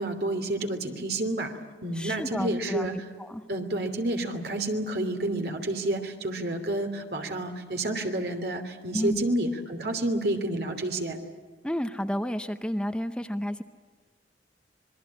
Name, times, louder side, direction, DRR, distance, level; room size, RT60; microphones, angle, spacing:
voice 1, 0.0-1.5 1.8-2.9 3.5-11.2, right 1 dB, 65° right, 5 dB, 2.9 m, -29 dB
voice 2, 1.9-2.9 3.2-3.4 8.9-9.3 11.6-13.6, equal, 5° left, 9 dB, 0.7 m, -31 dB
26.5 x 21.5 x 8.6 m, 1.5 s
head